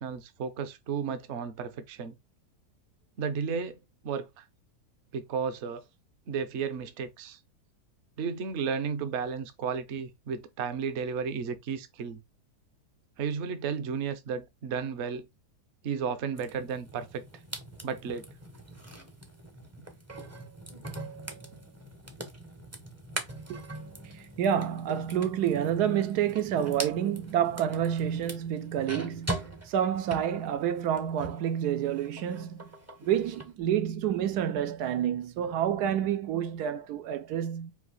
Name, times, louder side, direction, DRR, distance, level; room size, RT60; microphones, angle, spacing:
voice 1, 0.0-2.1 3.2-3.8 4.0-4.4 5.1-5.8 6.3-7.4 8.2-12.2 13.2-15.3 15.8-17.2 17.8-18.3, right 6 dB, 55° right, 0.9 m, -33 dB
sound 1, 16.4-31.5 31.8-33.5, right 1 dB, 20° right, 0.5 m, -42 dB
voice 2, 24.1-32.6 33.0-37.7, right 9 dB, 80° right, 1.1 m, -29 dB
4.8 x 2.6 x 4.0 m
omnidirectional pair, 1.7 m